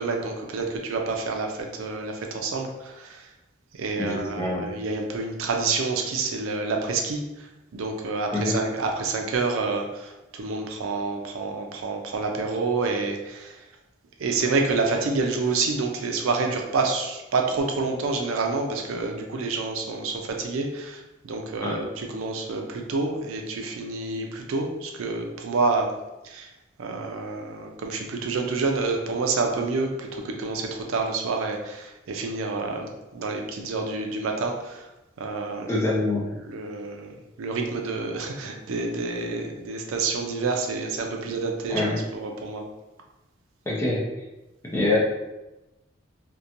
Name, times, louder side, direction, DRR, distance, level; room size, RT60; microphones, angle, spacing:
voice 1, 0.0-3.3 3.7-13.6 14.2-25.9 26.2-26.5 26.8-34.9 35.2-35.8 36.4-41.8 42.1-42.6, right 3 dB, 90° right, 3 dB, 0.4 m, -28 dB
voice 2, 4.0-4.6 8.3-8.6 21.6-21.8 35.7-36.3 41.7-42.0 43.7-44.0 44.7-45.0, left 2 dB, 15° left, -5 dB, 0.5 m, -25 dB
2.8 x 2.1 x 2.5 m, 1.0 s
head